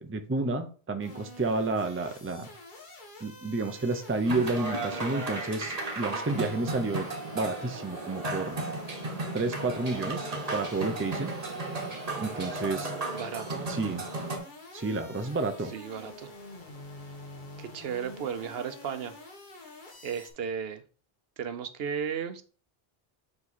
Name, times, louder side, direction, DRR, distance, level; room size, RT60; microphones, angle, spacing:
voice 1, 0.0-2.5 3.2-7.1 7.3-8.6 9.3-11.3 12.2-12.9 13.7-14.0 14.7-15.7, right 3 dB, 15° right, 0.5 m, -30 dB
sound 1, 1.0-20.3, left 2 dB, 50° left, 1.6 m, -47 dB
sound 2, 4.3-14.4, right 2 dB, 40° right, 1.2 m, -35 dB
voice 2, 13.1-13.7 15.7-16.3 17.6-19.2 20.0-20.8 21.4-22.4, right 7 dB, 75° right, 0.9 m, -35 dB
5.2 x 4.8 x 4.2 m
omnidirectional pair, 1.0 m